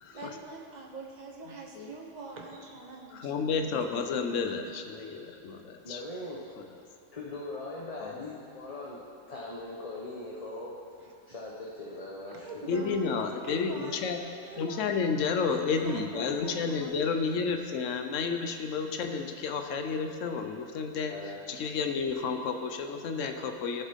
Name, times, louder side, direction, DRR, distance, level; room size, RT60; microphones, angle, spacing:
voice 1, 0.1-4.2 12.4-17.0, right 3 dB, 35° right, 0 dB, 1.2 m, -44 dB
voice 2, 3.1-6.0 6.6-6.7 8.0-8.1 12.7-14.2 14.6-21.1 21.5-23.8, left 5 dB, 80° left, 6 dB, 1.1 m, -31 dB
voice 3, 5.8-6.4 7.1-10.7 11.3-12.4 12.7-13.1 21.1-21.4, left 2 dB, 30° left, -5 dB, 1.0 m, -40 dB
17.0 x 7.3 x 3.6 m, 2.4 s
omnidirectional pair, 1.3 m